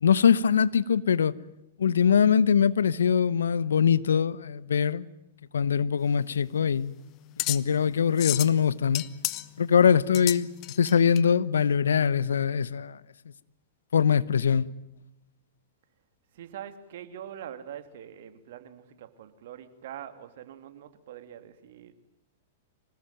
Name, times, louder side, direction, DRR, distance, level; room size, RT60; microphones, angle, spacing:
voice 1, 0.0-1.3 1.8-5.1 5.5-6.9 7.5-9.0 9.6-10.5 10.8-13.0 13.9-14.7, left 7 dB, 80° left, 0.9 m, -22 dB
sound 1, 6.0-11.2, left 19 dB, 40° left, 1.0 m, -34 dB
voice 2, 16.3-21.9, right 10 dB, 65° right, 2.6 m, -43 dB
25.5 x 19.5 x 9.1 m
hypercardioid pair, 110°, 0 cm